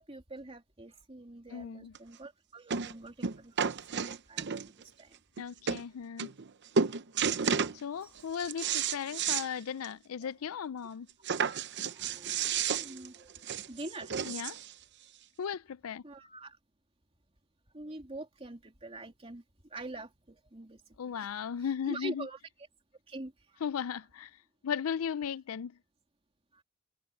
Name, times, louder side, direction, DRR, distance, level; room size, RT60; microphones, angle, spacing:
voice 1, 0.0-4.5 5.0-5.1 11.8-13.3 13.7-14.1 16.0-16.6 17.7-19.4 19.7-20.8 21.2-21.3 21.9-22.4 23.1-23.3, right 2 dB, 30° right, 3.0 m, -45 dB
voice 2, 1.5-1.9 5.4-6.3 7.7-11.1 14.2-14.6 15.4-16.0 21.0-22.3 23.6-24.3 24.6-25.8, left 7 dB, 80° left, 0.4 m, -36 dB
sound 1, 2.0-2.1 2.7-2.9 3.2-4.8 5.4-5.5 5.7-5.8 6.2-6.5 6.8-7.8 8.2-9.5 9.8-9.9 10.3-10.4 11.2-14.7 15.5-15.6, right 6 dB, 55° right, 0.8 m, -32 dB
head